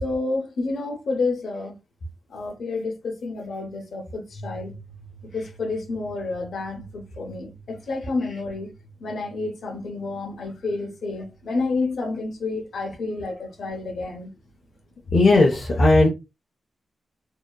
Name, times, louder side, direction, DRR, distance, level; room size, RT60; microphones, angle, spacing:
voice 1, 0.0-1.8 2.3-4.7 5.3-8.7 9.0-14.3, left 3 dB, 80° left, 0.7 m, -29 dB
voice 2, 15.1-16.1, left 2 dB, 45° left, 0.5 m, -16 dB
2.7 x 2.3 x 2.2 m
wide cardioid pair, 170°, 0 cm